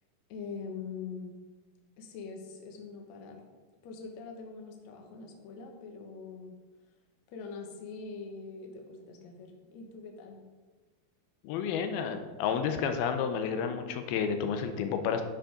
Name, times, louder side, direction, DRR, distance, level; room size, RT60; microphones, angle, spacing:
voice 1, 0.3-1.3 2.0-3.4 3.8-6.5 7.3-10.4, left 5 dB, 65° left, 2 dB, 2.0 m, -43 dB
voice 2, 11.4-15.2, left 7 dB, 90° left, 7 dB, 2.6 m, -31 dB
10.5 x 5.1 x 5.0 m, 1.3 s
omnidirectional pair, 4.3 m